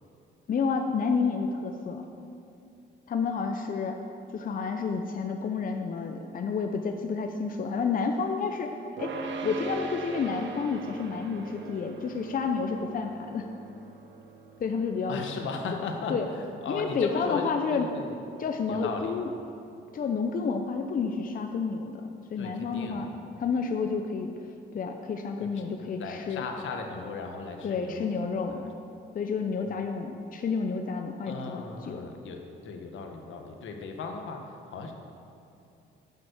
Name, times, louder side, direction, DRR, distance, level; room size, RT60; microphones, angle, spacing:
voice 1, 0.5-2.0 3.1-4.0 4.3-9.1 9.4-13.5 14.6-15.2 16.1-16.3 16.7-17.9 18.4-19.3 19.9-23.1 23.4-24.3 24.7-26.4 27.6-28.7 29.1-32.0, left 5 dB, 45° left, 5 dB, 0.7 m, -30 dB
sound 1, 9.0-20.3, right 4 dB, 70° right, 1.1 m, -42 dB
voice 2, 15.1-18.2 18.7-19.2 22.4-23.5 25.4-28.7 31.2-34.9, left 4 dB, 75° left, 3 dB, 1.4 m, -37 dB
9.7 x 7.4 x 6.5 m, 2.7 s
cardioid pair, 90°, 20 cm